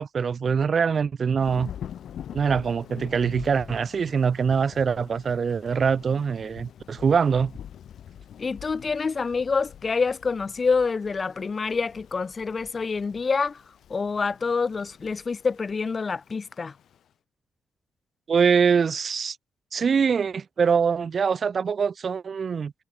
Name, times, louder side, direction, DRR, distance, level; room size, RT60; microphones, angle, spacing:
voice 1, 0.0-1.7 2.3-7.5 18.3-19.4 19.7-22.7, right 6 dB, 45° right, 0.4 m, -23 dB
Thunder / Rain, 1.4-17.0, left 9 dB, 70° left, 3.5 m, -44 dB
voice 2, 8.4-13.6 13.9-16.7, left 4 dB, 35° left, 1.5 m, -27 dB
cardioid pair, 110°, 0 cm